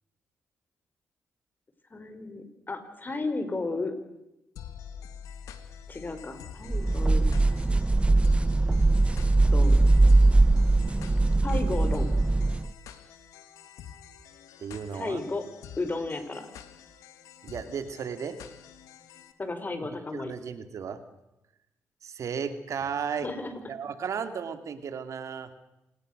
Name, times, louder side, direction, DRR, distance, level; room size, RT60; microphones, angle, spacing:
voice 1, 1.9-3.9 5.9-7.2 9.5-9.8 11.4-12.1 14.9-15.4 15.8-16.5 19.4-20.3 23.2-23.5, left 3 dB, 35° left, 9 dB, 4.9 m, -33 dB
sound 1, 4.6-19.3, left 8 dB, 90° left, 1.9 m, -48 dB
sound 2, 6.7-12.7, right 2 dB, 20° right, 0.8 m, -21 dB
voice 2, 14.6-15.2 17.4-18.4 20.1-21.0 22.0-23.3 23.7-25.5, right 7 dB, 70° right, 9 dB, 2.4 m, -34 dB
27.5 x 19.5 x 6.7 m, 0.90 s
supercardioid pair, 60°, 6 cm